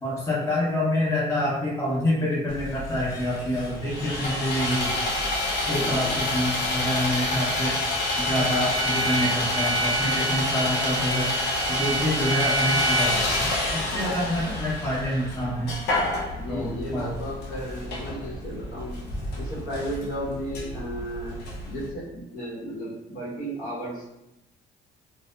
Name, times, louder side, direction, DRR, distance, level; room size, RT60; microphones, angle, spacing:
voice 1, 0.0-4.9 5.7-7.8 8.2-11.3 11.7-15.7 16.5-17.1, left 1 dB, 15° left, -6 dB, 0.7 m, -27 dB
Sawing, 2.5-21.9, left 1 dB, 80° left, 0.6 m, -28 dB
voice 2, 5.6-6.1 16.4-19.0 19.3-21.4 21.6-24.1, equal, 55° left, -5 dB, 0.9 m, -34 dB
2.7 x 2.0 x 2.2 m, 0.87 s
cardioid pair, 110°, 17 cm